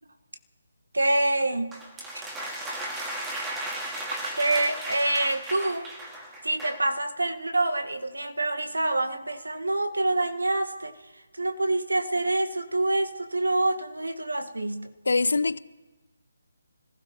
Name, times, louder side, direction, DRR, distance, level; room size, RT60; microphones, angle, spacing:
voice 1, 0.9-1.7 2.1-2.2 4.4-5.9 6.4-11.0 11.3-14.9, right 2 dB, 80° right, 6 dB, 1.4 m, -26 dB
sound 1, 1.7-6.9, right 1 dB, 10° right, 1.9 m, -35 dB
voice 2, 15.1-15.6, left 3 dB, 70° left, 19 dB, 0.5 m, -23 dB
26.5 x 16.0 x 3.0 m, 1.1 s
figure-of-eight pair, 150°, 0 cm